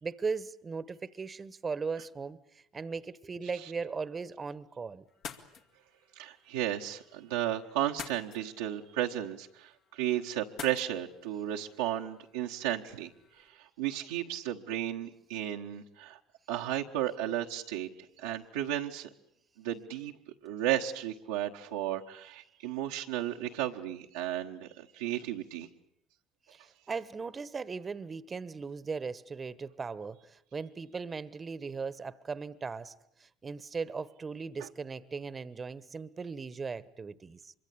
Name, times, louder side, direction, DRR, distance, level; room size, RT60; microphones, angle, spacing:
voice 1, 0.0-2.4 2.7-5.0 26.5-32.9 33.2-37.5, right 5 dB, 30° right, 1.1 m, -38 dB
sound 1, 5.1-13.5, left 6 dB, 65° left, 2.4 m, -50 dB
voice 2, 6.1-13.1 13.4-16.2 16.5-17.9 18.2-19.1 19.6-20.1 20.4-25.7 34.6-34.7, right 12 dB, 85° right, 1.3 m, -34 dB
25.0 x 23.5 x 8.5 m
hypercardioid pair, 75°, 0 cm